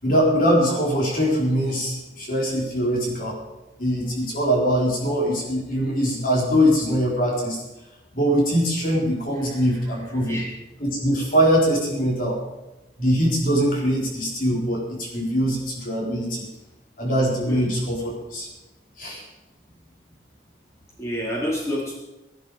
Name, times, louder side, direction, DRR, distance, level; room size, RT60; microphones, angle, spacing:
voice 1, 0.0-3.4 3.8-7.6 8.1-10.4 10.8-12.4 13.0-16.5 17.0-18.5 19.0-19.2, equal, 50° left, -3 dB, 4.3 m, -22 dB
voice 2, 9.4-10.5 17.5-17.7 21.0-21.9, equal, 15° left, -5 dB, 4.2 m, -30 dB
18.5 x 12.0 x 5.0 m, 1.0 s
head